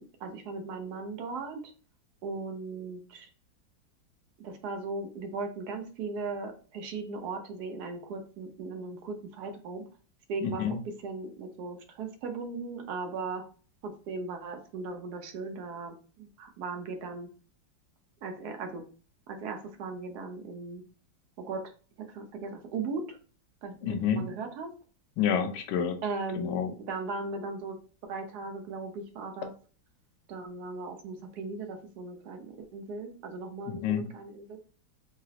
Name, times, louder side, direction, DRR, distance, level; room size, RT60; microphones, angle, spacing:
voice 1, 0.0-1.7 2.2-3.3 4.4-9.8 10.3-13.4 13.8-17.3 18.2-18.8 19.3-20.8 21.4-21.6 22.1-23.2 23.6-24.7 26.0-27.8 28.1-29.5 30.3-34.6, right 3 dB, 70° right, 5 dB, 1.0 m, -38 dB
voice 2, 10.4-10.8 23.8-24.2 25.2-26.0 26.4-26.7 33.7-34.1, left 8 dB, 75° left, 5 dB, 1.1 m, -28 dB
3.8 x 2.0 x 2.7 m, 0.39 s
omnidirectional pair, 2.1 m